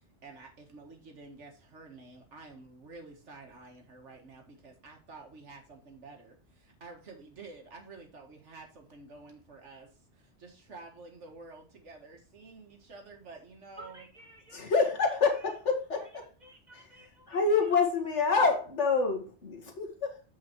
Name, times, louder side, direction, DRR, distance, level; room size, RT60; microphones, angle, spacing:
voice 1, 0.0-14.1, right 3 dB, 85° right, 3 dB, 2.0 m, -50 dB
voice 2, 13.8-15.5 16.0-17.4 17.7-17.8, right 1 dB, 40° right, 1 dB, 1.9 m, -53 dB
voice 3, 14.5-16.1 16.7-16.9 17.3-20.2, left 4 dB, 80° left, 2 dB, 1.9 m, -27 dB
8.0 x 5.0 x 4.5 m, 0.37 s
omnidirectional pair, 1.2 m